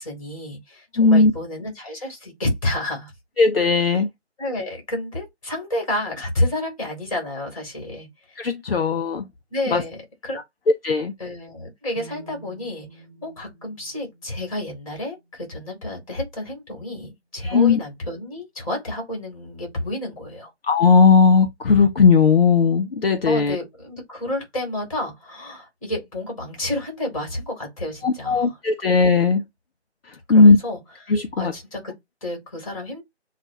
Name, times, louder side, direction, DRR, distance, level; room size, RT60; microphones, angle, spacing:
voice 1, 0.0-3.1 3.8-4.0 4.4-8.4 9.5-10.0 10.2-10.4 11.2-20.5 23.2-28.6 30.3-30.8 31.0-31.9 32.2-33.0, left 1 dB, 30° left, 2.4 m, -30 dB
voice 2, 1.0-1.3 3.4-4.1 8.4-9.3 9.7-9.8 10.8-11.1 17.4-17.8 20.6-23.6 28.0-29.4 30.1-30.6 31.1-31.5, left 4 dB, 55° left, 0.6 m, -17 dB
sound 1, 12.0-15.9, right 4 dB, 25° right, 0.7 m, -48 dB
7.2 x 2.4 x 2.7 m
figure-of-eight pair, 160°, 34 cm